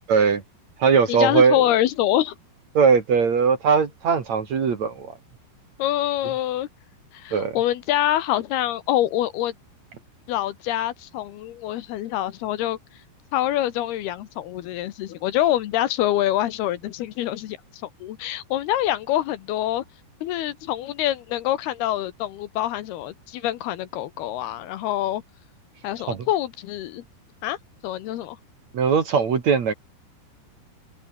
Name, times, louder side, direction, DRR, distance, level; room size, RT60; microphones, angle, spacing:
voice 1, 0.1-0.4 0.8-1.6 2.7-5.1 7.3-7.6 26.1-26.3 28.7-29.7, right 5 dB, 45° right, 3.2 m, -20 dB
voice 2, 1.1-2.3 5.8-6.7 7.1-9.5 10.3-12.8 13.3-17.6 18.0-19.8 20.2-25.2 25.8-27.0 27.4-27.6 27.8-28.4, left 13 dB, 75° left, 3.1 m, -25 dB
omnidirectional pair, 4.8 m